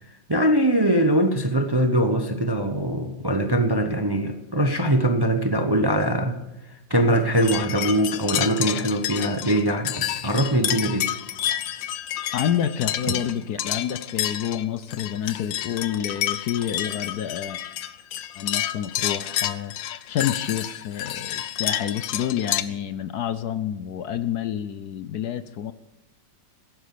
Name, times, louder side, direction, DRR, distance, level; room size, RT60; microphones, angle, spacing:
voice 1, 0.3-6.4 6.7-11.1, right 1 dB, 20° right, 6 dB, 0.7 m, -22 dB
sound 1, 7.4-22.6, left 12 dB, 85° left, 1.4 m, -29 dB
voice 2, 12.3-17.6 18.4-25.7, left 10 dB, 65° left, 12 dB, 1.1 m, -28 dB
17.0 x 9.7 x 6.7 m, 0.97 s
omnidirectional pair, 2.0 m